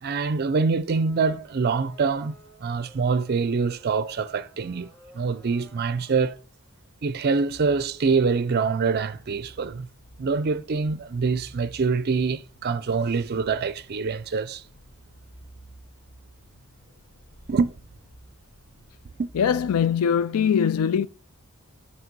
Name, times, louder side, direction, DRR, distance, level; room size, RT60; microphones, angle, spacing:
voice 1, 0.0-4.9 5.1-6.4 7.0-9.9 10.2-14.6 17.5-17.7 19.2-19.3, right 4 dB, 45° right, 0.4 m, -25 dB
sound 1, 0.9-6.4, equal, 5° left, 3.3 m, -54 dB
sound 2, 7.5-20.1, right 1 dB, 55° left, 1.1 m, -52 dB
voice 2, 19.3-21.1, left 7 dB, 80° left, 0.4 m, -22 dB
9.1 x 3.2 x 5.3 m
head